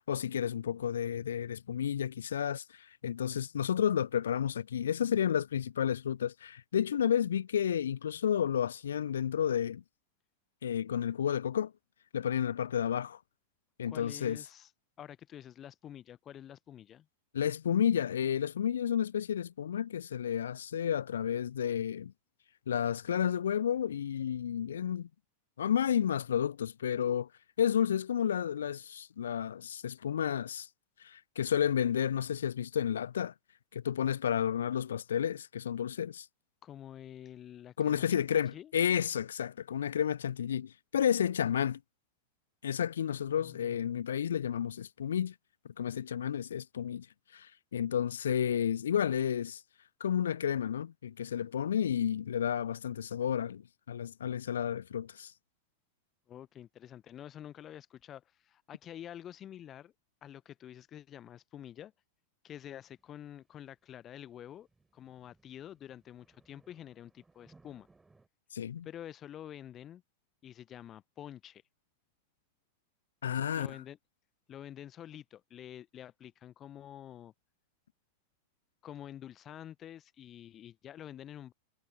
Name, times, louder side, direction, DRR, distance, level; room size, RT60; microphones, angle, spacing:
voice 1, 0.0-9.8 10.6-11.7 12.1-13.2 13.8-14.4 17.3-22.1 22.7-25.1 25.6-27.3 27.6-30.7 31.0-33.3 33.7-36.3 37.8-41.8 42.6-45.3 45.8-47.1 47.3-49.6 50.0-55.3 68.5-68.9 73.2-73.8, left 9 dB, 65° left, 0.4 m, -31 dB
voice 2, 13.9-14.7 15.0-17.1 36.6-38.7 43.2-44.0 56.3-59.9 60.2-61.9 62.4-64.7 64.9-67.9 68.8-70.0 70.4-71.6 73.3-74.0 74.5-77.3 78.8-81.5, left 10 dB, 30° left, 0.8 m, -48 dB
sound 1, 62.7-68.3, right 3 dB, 10° right, 7.0 m, -67 dB
figure-of-eight pair, 90°, 0 cm